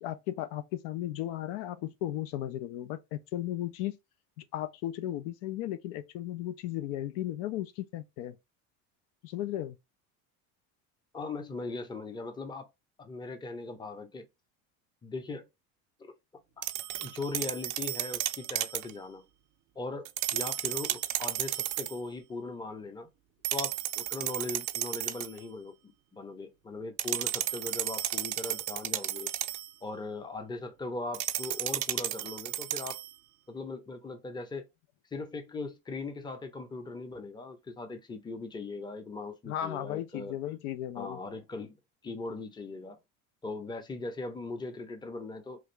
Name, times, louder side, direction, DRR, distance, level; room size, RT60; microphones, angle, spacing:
voice 1, 0.0-4.0 4.4-8.4 9.2-9.8 39.5-41.2, left 13 dB, 65° left, 0.6 m, -35 dB
voice 2, 11.1-12.7 13.0-14.2 15.0-15.5 16.0-16.1 16.6-16.7 17.0-19.2 19.8-23.1 23.5-29.3 29.8-33.0 33.5-34.6 35.1-40.4 40.9-41.8 42.0-43.0 43.4-45.6, left 3 dB, 10° left, 0.6 m, -39 dB
sound 1, 16.6-18.9 20.0-22.0 23.4-25.4 27.0-29.7 31.1-33.1, right 14 dB, 45° right, 0.4 m, -33 dB
3.1 x 2.5 x 3.1 m
supercardioid pair, 90°, 44 cm